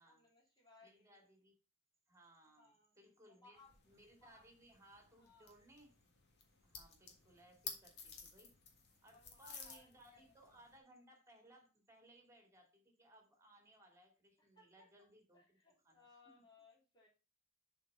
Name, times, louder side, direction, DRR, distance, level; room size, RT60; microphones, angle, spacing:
voice 1, 0.0-1.3 2.6-2.9 3.2-3.7 4.2-4.5 5.2-5.5 9.1-10.6 14.4-14.9 15.3-17.1, left 3 dB, 20° left, -4 dB, 3.1 m, -66 dB
voice 2, 0.8-1.5 2.1-3.6 3.9-6.0 6.6-8.6 9.0-15.6 15.8-16.0 16.3-16.4, right 1 dB, 15° right, 3 dB, 2.4 m, -64 dB
sound 1, 3.5-10.8, left 5 dB, 55° left, 1.7 m, -55 dB
7.4 x 4.6 x 5.4 m, 0.32 s
head